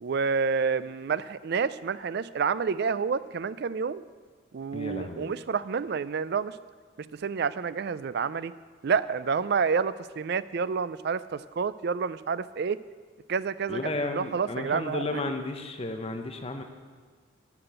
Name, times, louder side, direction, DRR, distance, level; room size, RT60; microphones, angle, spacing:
voice 1, 0.0-4.0 4.5-6.6 7.0-8.5 8.8-12.8 13.3-15.2, right 5 dB, 55° right, 16 dB, 0.4 m, -29 dB
voice 2, 4.7-5.3 13.7-16.6, left 2 dB, 30° left, 5 dB, 0.8 m, -33 dB
13.5 x 5.9 x 8.1 m, 1.5 s
head